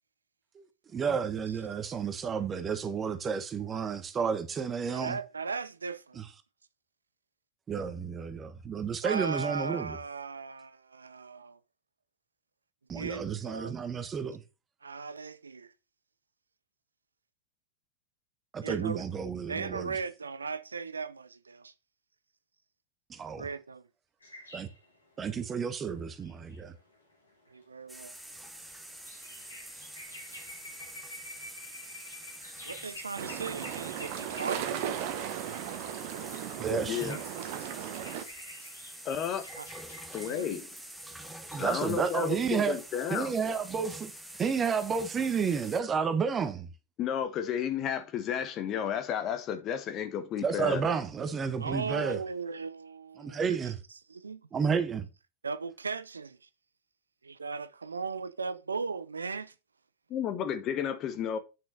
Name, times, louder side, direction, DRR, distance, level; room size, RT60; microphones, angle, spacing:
voice 1, 0.9-5.2 6.2-6.3 7.7-10.0 12.9-14.4 18.5-19.9 23.1-23.5 24.5-24.7 25.2-26.7 36.6-37.2 41.4-42.8 43.1-44.1 44.4-46.7 50.4-52.2 53.2-53.8 54.5-55.1, right 6 dB, 20° right, 1.3 m, -31 dB
voice 2, 4.9-6.2 9.0-11.6 12.9-13.8 14.8-15.7 18.6-19.0 19.5-21.7 23.3-23.8 27.5-28.1 32.6-35.0 39.6-39.7 40.2-40.6 51.6-53.6 53.9-54.4 55.4-56.5 57.2-59.5, right 5 dB, 75° right, 0.6 m, -37 dB
sound 1, 24.2-35.0 35.6-40.4 41.3-41.7, left 1 dB, 75° left, 3.8 m, -50 dB
sound 2, 27.9-45.8, right 1 dB, 5° right, 1.2 m, -46 dB
sound 3, 33.2-38.2, right 10 dB, 45° right, 1.2 m, -36 dB
voice 3, 36.8-37.2 39.0-39.4 40.1-40.7 41.6-43.3 47.0-50.8 60.1-61.4, left 9 dB, 35° left, 1.4 m, -32 dB
9.2 x 6.1 x 4.1 m
figure-of-eight pair, 90°, 0 cm